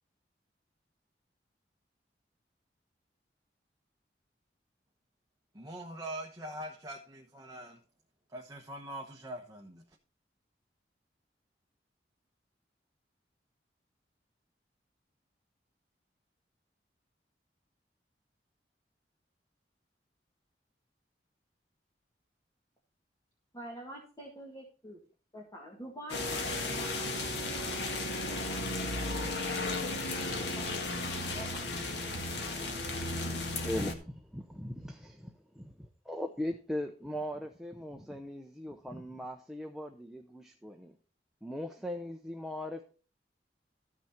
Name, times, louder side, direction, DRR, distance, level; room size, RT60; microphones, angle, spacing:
voice 1, 5.5-7.8 8.3-9.8, right 1 dB, 20° right, 0 dB, 1.1 m, -43 dB
voice 2, 23.5-25.0 25.3-28.7 29.8-29.9 30.4-30.8 31.3-31.6, equal, 20° left, -2 dB, 2.0 m, -47 dB
sound 1, 26.1-33.9, left 2 dB, 75° left, 1.8 m, -34 dB
voice 3, 33.2-41.0 41.4-42.8, left 1 dB, 5° right, 3 dB, 0.7 m, -39 dB
14.0 x 6.2 x 4.4 m, 0.38 s
head